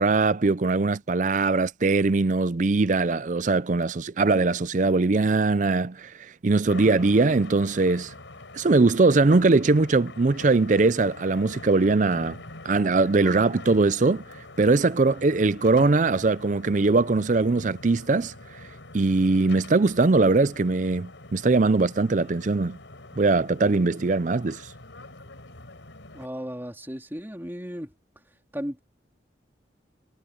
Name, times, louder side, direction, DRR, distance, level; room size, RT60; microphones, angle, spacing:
voice 1, 0.0-6.1 6.4-8.1 8.5-12.4 12.6-14.2 14.6-18.3 18.9-22.8 23.2-24.6, right 3 dB, 40° right, 0.5 m, -21 dB
sound 1, 6.7-26.3, left 2 dB, 85° left, 4.8 m, -44 dB
voice 2, 26.1-27.9 28.5-28.8, equal, 10° right, 3.6 m, -35 dB
head